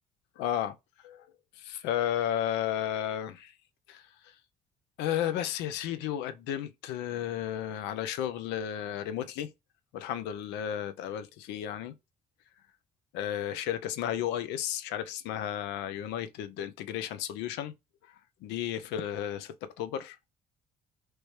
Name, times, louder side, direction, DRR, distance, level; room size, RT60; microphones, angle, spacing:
voice 1, 0.4-0.7 1.0-1.2 1.6-3.5 3.9-4.0 5.0-9.5 9.9-11.9 13.1-17.7 18.4-20.2, left 10 dB, 70° left, 0.5 m, -33 dB
3.3 x 3.0 x 3.0 m
hypercardioid pair, 50°, 18 cm